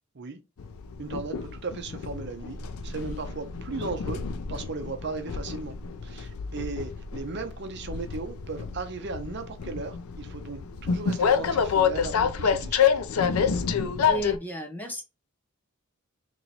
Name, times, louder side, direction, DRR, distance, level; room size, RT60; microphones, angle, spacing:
Train, 0.6-14.4, left 7 dB, 90° left, 0.5 m, -28 dB
voice 1, 1.0-4.2 4.5-5.7 6.0-13.0, right 3 dB, 55° right, 0.7 m, -36 dB
voice 2, 14.1-15.0, right 2 dB, 10° left, 0.7 m, -33 dB
3.1 x 2.9 x 3.9 m
head